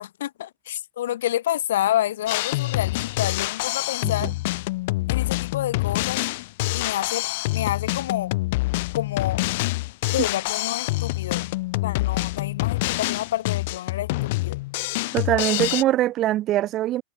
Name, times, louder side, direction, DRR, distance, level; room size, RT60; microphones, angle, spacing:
voice 1, 0.0-4.3 5.1-6.2 6.7-7.3 7.5-8.3 8.9-9.4 10.1-11.5 11.8-14.6, left 12 dB, 75° left, 2.1 m, -28 dB
Drum kit, 2.3-15.8, left 21 dB, 50° left, 0.8 m, -26 dB
voice 2, 15.1-17.0, right 14 dB, 25° right, 0.9 m, -22 dB
supercardioid pair, 170°, 0 cm